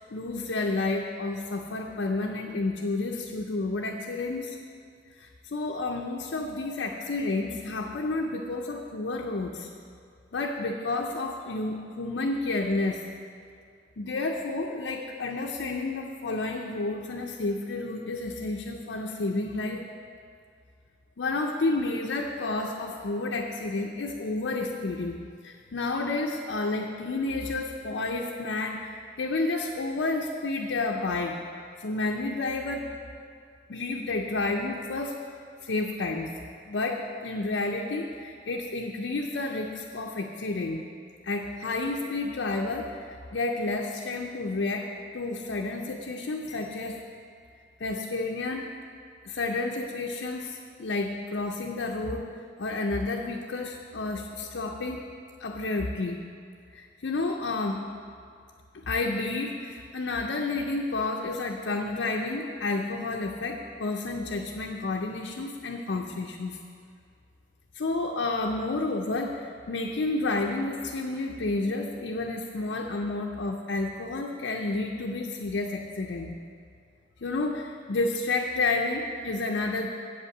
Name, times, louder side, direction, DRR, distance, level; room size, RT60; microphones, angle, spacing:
voice 1, 0.0-4.6 5.2-9.7 10.3-13.0 14.0-19.8 21.2-31.4 31.8-33.0 33.7-35.2 35.6-36.3 36.6-40.8 41.2-47.5 47.8-48.7 49.3-52.3 52.6-55.1 55.4-56.2 56.7-57.8 58.7-66.6 67.7-76.4 77.2-79.9, left 3 dB, 70° left, 0 dB, 0.5 m, -30 dB
8.0 x 5.6 x 7.1 m, 2.3 s
head